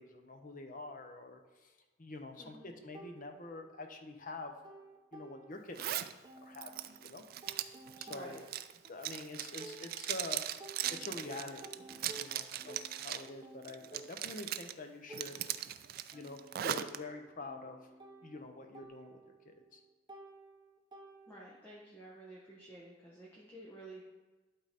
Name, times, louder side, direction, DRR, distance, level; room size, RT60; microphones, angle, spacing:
voice 1, 0.0-1.7 2.0-4.5 5.1-6.0 6.4-7.2 8.0-8.4 8.9-10.4 10.9-11.8 12.1-15.4 16.1-17.8 18.2-19.8, left 2 dB, 45° left, 5 dB, 0.8 m, -46 dB
voice 2, 2.4-2.7 8.1-8.4 21.3-24.0, right 1 dB, 10° left, -6 dB, 1.2 m, -51 dB
sound 1, 2.9-4.0 4.3-5.9 6.2-10.3 10.6-21.7, right 2 dB, 20° right, 0.7 m, -55 dB
Zipper (clothing), 5.7-6.1 6.5-13.3 13.6-14.7 15.1-17.0, right 11 dB, 50° right, 0.3 m, -39 dB
11.5 x 3.9 x 4.1 m, 1.2 s
head